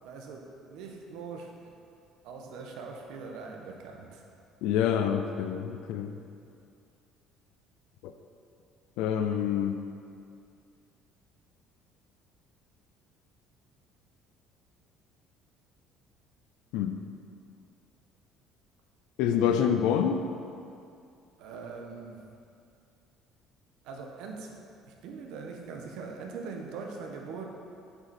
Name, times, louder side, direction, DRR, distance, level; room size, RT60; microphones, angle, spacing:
voice 1, 0.0-1.7 2.2-4.2 21.4-22.2 23.8-24.5 24.8-27.4, right 4 dB, 75° right, 1 dB, 1.2 m, -42 dB
voice 2, 4.6-6.1 8.0-8.1 9.0-9.8 16.7-17.0 19.2-20.2, left 8 dB, 85° left, 7 dB, 0.5 m, -27 dB
8.0 x 8.0 x 4.4 m, 2.5 s
cardioid pair, 150°, 0 cm